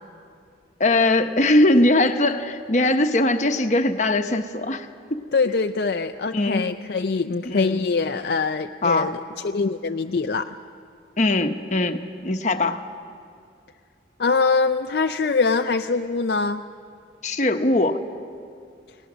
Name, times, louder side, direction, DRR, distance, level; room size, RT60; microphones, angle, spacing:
voice 1, 0.8-5.2 6.3-6.6 7.4-7.8 8.8-9.1 11.2-12.8 17.2-18.0, left 2 dB, 40° left, 7 dB, 1.0 m, -21 dB
voice 2, 5.3-10.5 14.2-16.6, left 4 dB, 55° left, 7 dB, 0.5 m, -23 dB
29.0 x 18.0 x 6.2 m, 2.4 s
head